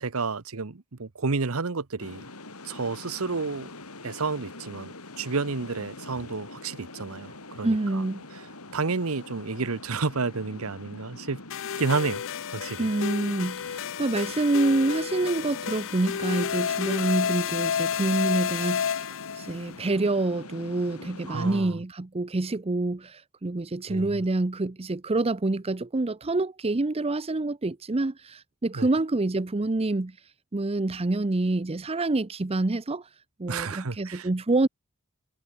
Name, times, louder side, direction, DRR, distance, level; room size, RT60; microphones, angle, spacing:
voice 1, 0.0-2.2 2.6-3.7 4.0-8.0 8.7-11.4 11.8-12.2 12.5-12.9 21.3-21.7 23.9-24.2 28.7-28.9 33.5-34.3, right 4 dB, 70° right, 1.0 m, -30 dB
sound 1, 2.0-21.6, left 2 dB, 80° left, 5.2 m, -44 dB
voice 2, 7.6-8.2 12.8-30.2 30.5-33.1 33.4-34.7, right 2 dB, 25° right, 0.7 m, -27 dB
sound 2, 11.5-19.6, left 7 dB, 60° left, 0.5 m, -30 dB
head